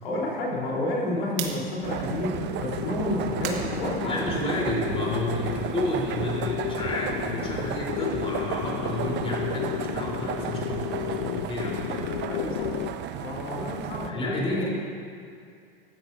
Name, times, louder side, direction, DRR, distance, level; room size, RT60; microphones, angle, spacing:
voice 1, 0.0-4.2 12.3-12.7 13.2-14.7, left 1 dB, 80° left, -3 dB, 4.2 m, -30 dB
sound 1, 1.3-13.1, left 12 dB, 45° left, 0.6 m, -33 dB
sound 2, 1.3-4.7 5.1-8.0 8.3-12.5, right 8 dB, 65° right, 2.1 m, -44 dB
sound 3, 1.8-14.1, right 9 dB, 35° right, 0.7 m, -34 dB
voice 2, 4.0-12.1 14.0-14.7, left 1 dB, 20° left, -4 dB, 4.1 m, -31 dB
19.0 x 15.0 x 2.8 m, 2.4 s
hypercardioid pair, 100°, 30 cm